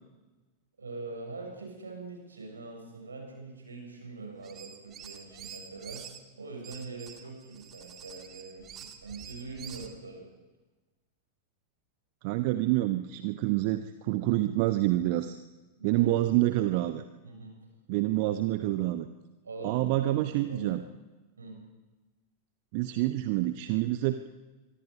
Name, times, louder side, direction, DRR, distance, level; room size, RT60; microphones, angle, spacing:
voice 1, 0.8-6.0 6.4-10.3 15.8-16.3 17.2-17.6 18.2-18.4 19.4-20.9 21.4-21.6, right 3 dB, 75° right, 1 dB, 6.9 m, -43 dB
sound 1, 4.4-6.2 6.6-10.0, right 8 dB, 30° right, 2.3 m, -47 dB
voice 2, 12.2-15.4 15.8-17.0 17.9-19.1 19.6-20.8 22.7-24.2, right 16 dB, 45° right, 10 dB, 0.9 m, -27 dB
24.0 x 23.5 x 5.4 m, 1.2 s
figure-of-eight pair, 90°, 0 cm